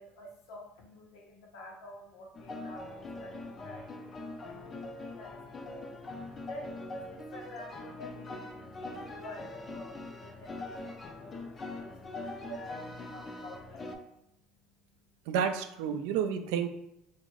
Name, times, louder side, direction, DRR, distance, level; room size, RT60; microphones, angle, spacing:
voice 1, 0.0-15.2, left 2 dB, 75° left, -1 dB, 0.8 m, -50 dB
sound 1, 2.3-14.0, left 2 dB, 30° left, 0.4 m, -43 dB
voice 2, 15.3-16.7, right 8 dB, 80° right, 7 dB, 0.3 m, -30 dB
2.5 x 2.5 x 3.1 m, 0.83 s
supercardioid pair, 105°, 0 cm